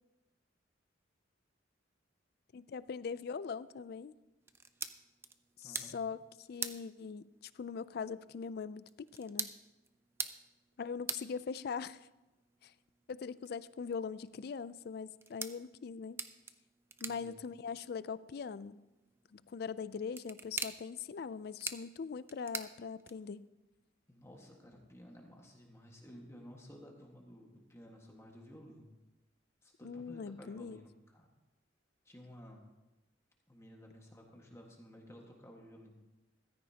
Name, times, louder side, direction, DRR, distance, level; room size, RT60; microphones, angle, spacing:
voice 1, 2.5-4.1 5.6-9.6 10.8-12.1 12.6-12.7 13.1-16.2 17.0-18.8 19.3-23.5 29.8-30.8, left 6 dB, 55° left, 17 dB, 0.4 m, -41 dB
sound 1, 4.4-23.5, right 4 dB, 15° right, 0.4 m, -47 dB
voice 2, 5.6-6.0 17.1-17.3 24.1-28.9 29.6-31.3 32.0-32.6 33.5-35.9, equal, 15° left, 0 dB, 1.6 m, -54 dB
15.0 x 13.5 x 2.9 m, 1.1 s
head